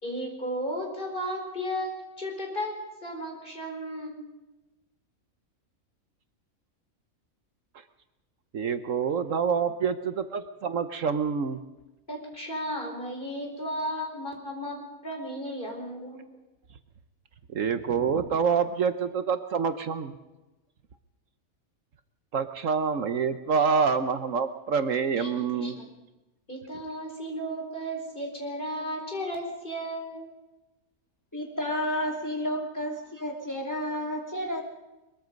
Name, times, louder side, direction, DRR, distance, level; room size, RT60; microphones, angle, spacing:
voice 1, 0.0-2.7 3.0-4.2 12.1-14.8 15.0-16.2 25.2-25.9 26.5-30.3, equal, 35° left, 1 dB, 4.9 m, -34 dB
voice 2, 8.5-11.6 17.5-20.2 22.3-25.8, right 6 dB, 65° right, 10 dB, 1.3 m, -27 dB
voice 3, 31.3-34.6, left 1 dB, 10° left, 1 dB, 3.4 m, -31 dB
22.5 x 22.5 x 5.3 m, 1.1 s
omnidirectional pair, 1.5 m